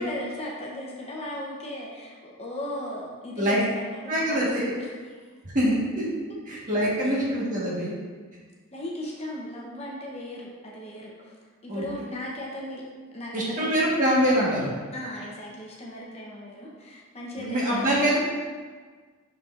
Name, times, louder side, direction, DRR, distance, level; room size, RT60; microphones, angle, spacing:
voice 1, 0.0-5.3 7.0-7.1 8.7-11.4 11.6-12.8 13.1-13.8 14.9-18.2, left 1 dB, 30° left, -3 dB, 0.8 m, -37 dB
voice 2, 4.1-4.7 5.5-6.1 6.5-7.9 11.7-11.8 13.3-14.7 17.4-18.2, equal, 35° right, -5 dB, 1.4 m, -24 dB
6.5 x 5.9 x 2.5 m, 1.5 s
head